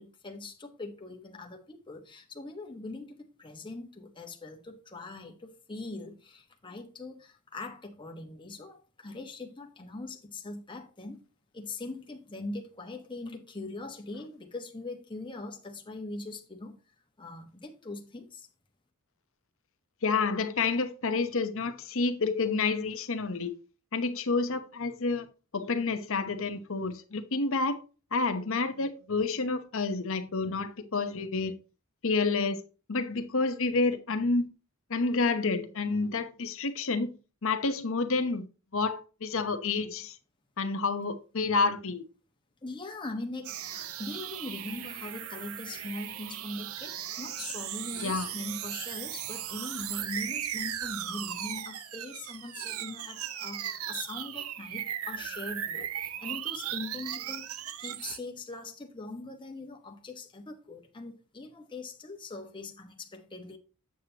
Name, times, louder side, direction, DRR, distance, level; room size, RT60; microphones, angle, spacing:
voice 1, 0.0-11.2 11.5-16.7 17.2-18.5 42.6-63.6, left 2 dB, 20° left, 1.3 m, -41 dB
voice 2, 20.0-23.6 23.9-25.3 25.5-27.8 28.1-31.5 32.0-32.6 32.9-34.5 34.9-37.1 37.4-38.4 38.7-40.1 40.6-42.0 48.0-48.3, left 4 dB, 65° left, 0.9 m, -29 dB
sound 1, 43.4-58.2, right 10 dB, 70° right, 0.6 m, -37 dB
8.5 x 7.6 x 2.9 m
head